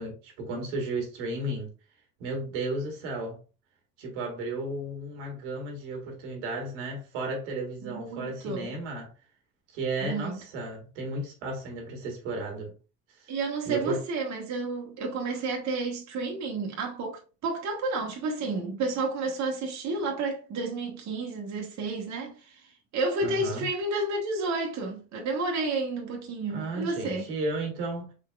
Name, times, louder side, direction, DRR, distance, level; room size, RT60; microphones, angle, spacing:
voice 1, 0.0-1.7 2.2-3.4 4.0-9.1 9.7-12.7 13.2-13.3 13.6-14.0 23.2-23.7 26.5-28.1, right 2 dB, 85° right, 1.7 m, -34 dB
voice 2, 7.8-8.7 10.0-10.3 13.3-27.3, right 3 dB, 50° right, 1.2 m, -31 dB
4.7 x 3.8 x 2.3 m
supercardioid pair, 90°, 36 cm